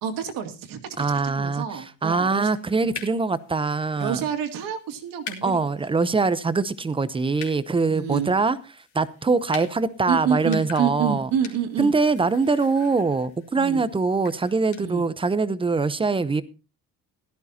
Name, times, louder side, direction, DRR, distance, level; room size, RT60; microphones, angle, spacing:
voice 1, 0.0-2.5 4.0-5.6 7.9-8.3 10.1-11.9 13.6-13.8 14.8-15.0, right 8 dB, 70° right, 2.2 m, -28 dB
voice 2, 1.0-4.2 5.4-11.3 11.8-16.4, right 4 dB, 15° right, 0.7 m, -23 dB
sound 1, 2.3-14.9, left 7 dB, 55° left, 3.1 m, -45 dB
16.0 x 13.0 x 2.8 m
cardioid pair, 145°, 35 cm